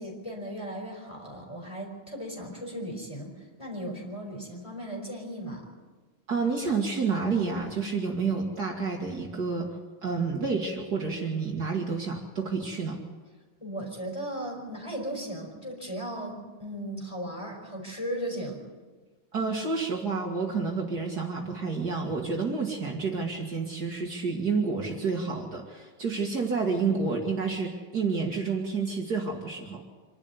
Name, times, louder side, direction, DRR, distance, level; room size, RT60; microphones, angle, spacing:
voice 1, 0.0-5.7 13.6-18.6, right 1 dB, 15° left, 0 dB, 4.8 m, -36 dB
voice 2, 6.3-9.7 10.0-13.0 19.3-29.8, right 4 dB, 50° right, 0 dB, 2.4 m, -29 dB
26.0 x 12.0 x 8.3 m, 1.4 s
omnidirectional pair, 2.2 m